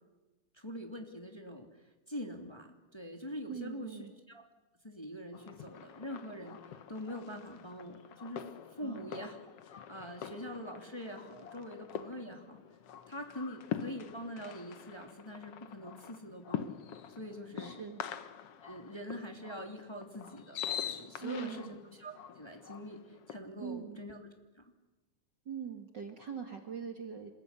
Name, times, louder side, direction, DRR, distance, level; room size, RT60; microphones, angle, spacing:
voice 1, 0.5-4.4 4.8-8.5 8.8-9.4 9.7-12.6 13.1-16.8 17.2-17.8 18.6-24.2 24.5-24.6, equal, 10° left, 3 dB, 2.8 m, -44 dB
voice 2, 3.5-4.1 8.8-9.1 17.6-18.0 21.2-21.8 23.6-24.0 25.5-27.3, right 7 dB, 40° right, 4 dB, 2.2 m, -42 dB
sound 1, 5.3-23.4, left 9 dB, 60° left, 2.0 m, -45 dB
27.5 x 21.0 x 9.8 m, 1.1 s
omnidirectional pair, 3.4 m